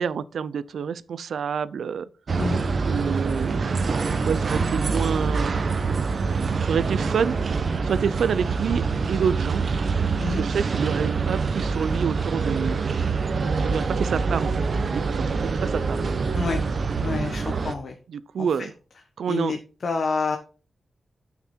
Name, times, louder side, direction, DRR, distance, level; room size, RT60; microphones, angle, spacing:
voice 1, 0.0-2.1 2.9-3.8 4.2-5.6 6.6-7.3 7.8-9.6 10.4-12.8 13.6-16.1 18.1-18.7 19.2-19.5, right 7 dB, 85° right, 0.5 m, -28 dB
sound 1, 2.3-17.7, right 4 dB, 50° right, 0.8 m, -25 dB
voice 2, 17.0-17.9 18.6-18.7 19.3-19.6 19.8-20.4, left 4 dB, 55° left, 1.2 m, -27 dB
9.3 x 5.9 x 4.3 m
wide cardioid pair, 120°, 0 cm